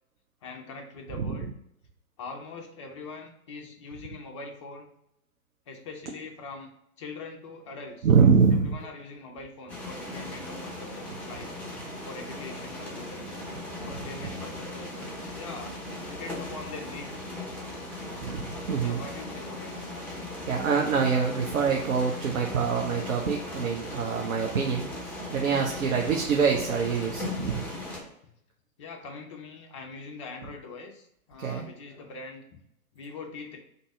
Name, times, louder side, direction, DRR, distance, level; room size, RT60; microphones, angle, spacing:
voice 1, 0.4-1.5 2.2-4.9 5.7-8.1 8.6-11.5 12.0-13.6 13.9-15.0 15.3-15.8 16.1-17.1 18.6-19.7 28.8-32.6 32.9-33.6, left 3 dB, 25° left, 3 dB, 0.4 m, -42 dB
voice 2, 8.0-8.7 18.2-19.0 20.5-27.7 31.4-31.7, right 6 dB, 65° right, 0 dB, 0.8 m, -25 dB
sound 1, 9.7-28.0, left 1 dB, 5° left, 0.8 m, -38 dB
3.8 x 2.7 x 4.7 m, 0.77 s
figure-of-eight pair, 115°, 44 cm